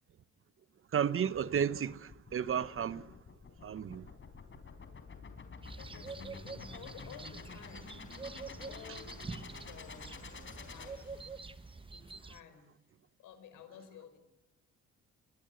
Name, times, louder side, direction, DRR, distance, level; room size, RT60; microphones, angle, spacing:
voice 1, 0.9-3.2 3.6-4.1, right 8 dB, 45° right, 0.9 m, -33 dB
sound 1, 1.3-11.7, left 5 dB, 40° left, 4.0 m, -50 dB
sound 2, 5.6-12.4, right 4 dB, 15° right, 0.9 m, -46 dB
voice 2, 5.8-7.9 8.6-9.2 9.5-10.1 10.5-11.1 11.9-12.7 13.2-14.2, left 8 dB, 85° left, 5.1 m, -53 dB
23.0 x 22.0 x 7.9 m
cardioid pair, 90°, 30 cm